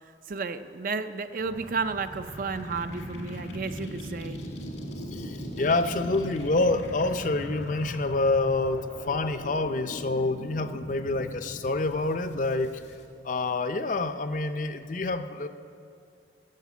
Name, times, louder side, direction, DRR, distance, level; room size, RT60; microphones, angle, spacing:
voice 1, 0.3-4.4, right 4 dB, 50° right, 10 dB, 0.5 m, -32 dB
sound 1, 1.4-13.0, equal, 90° left, 2.2 m, -40 dB
voice 2, 5.1-12.7 13.2-15.5, left 2 dB, 45° left, 9 dB, 0.6 m, -27 dB
13.0 x 7.5 x 8.3 m, 2.4 s
head